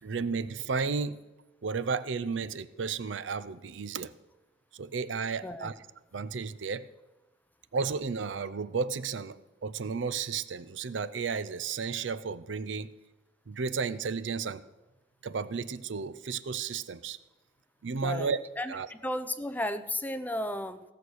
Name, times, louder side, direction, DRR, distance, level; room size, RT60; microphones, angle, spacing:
voice 1, 0.0-1.2 1.6-4.1 4.7-5.7 6.1-6.9 7.7-12.9 13.5-14.6 15.2-17.2 17.8-18.4 18.7-18.9, right 5 dB, 90° right, 16 dB, 0.5 m, -33 dB
voice 2, 18.0-20.8, left 1 dB, 10° left, 11 dB, 0.6 m, -34 dB
17.0 x 6.6 x 6.3 m, 1.1 s
head